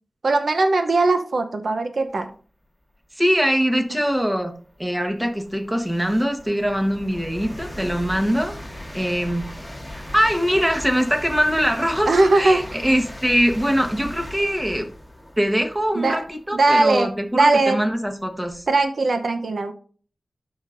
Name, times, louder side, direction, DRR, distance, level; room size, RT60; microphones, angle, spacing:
voice 1, 0.2-2.3 3.9-4.0 12.1-12.6 15.9-16.2 16.5-17.8 18.7-19.7, right 2 dB, 75° right, 6 dB, 0.7 m, -19 dB
voice 2, 3.2-4.5 4.8-8.5 8.9-9.5 9.9-14.8 15.4-18.6, equal, 10° right, 4 dB, 1.3 m, -22 dB
sound 1, 3.4-3.5 4.1-18.8, left 1 dB, 5° left, 1.8 m, -39 dB
12.5 x 5.0 x 2.6 m, 0.42 s
wide cardioid pair, 70°, 0 cm